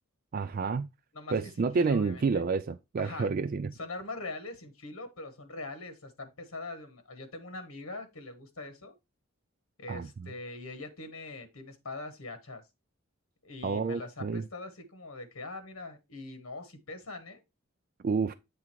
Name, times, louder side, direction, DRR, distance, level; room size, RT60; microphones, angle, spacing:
voice 1, 0.3-0.9 1.3-3.7 9.9-10.1 13.6-14.4 18.0-18.3, right 4 dB, 40° right, 0.3 m, -29 dB
voice 2, 1.1-2.4 3.0-3.3 3.7-8.9 9.8-12.6 13.4-17.4, left 2 dB, 85° left, 1.3 m, -42 dB
7.8 x 3.6 x 4.4 m
head